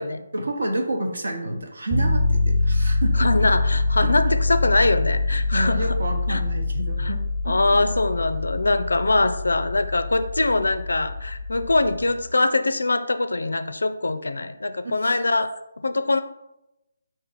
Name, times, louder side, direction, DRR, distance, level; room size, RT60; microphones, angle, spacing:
voice 1, 0.3-3.3 4.0-4.1 5.5-7.5 14.8-15.2, right 1 dB, 60° right, 3 dB, 0.9 m, -29 dB
sound 1, 1.9-12.0, left 2 dB, 15° right, 0.8 m, -24 dB
voice 2, 3.2-6.0 6.3-6.4 7.0-7.1 7.5-15.5 15.8-16.2, left 2 dB, 65° left, 9 dB, 0.3 m, -23 dB
4.5 x 2.5 x 4.0 m, 0.88 s
figure-of-eight pair, 145°, 0 cm